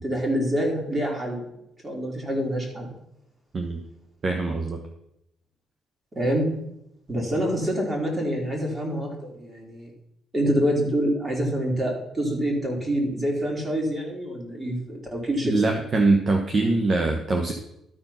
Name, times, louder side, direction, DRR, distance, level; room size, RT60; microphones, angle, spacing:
voice 1, 0.0-1.5 1.8-2.9 6.1-6.5 7.1-9.9 10.3-15.5, equal, 25° right, 0 dB, 3.4 m, -26 dB
voice 2, 4.2-4.8 15.4-17.5, right 3 dB, 40° right, 3 dB, 1.2 m, -23 dB
12.5 x 4.6 x 5.8 m, 0.81 s
cardioid pair, 90°, 0 cm